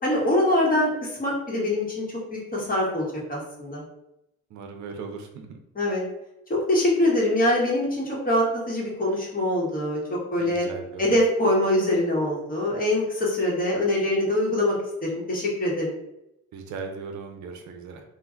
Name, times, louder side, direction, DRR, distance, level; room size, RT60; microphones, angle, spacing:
voice 1, 0.0-2.0 2.3-3.8 5.7-6.0 6.5-10.0 10.3-10.7 11.0-16.0, left 1 dB, 30° left, -4 dB, 1.3 m, -24 dB
voice 2, 4.5-5.6 10.4-11.0 16.5-18.0, right 4 dB, 70° right, 4 dB, 0.6 m, -38 dB
2.5 x 2.2 x 3.7 m, 0.85 s
cardioid pair, 90°, 30 cm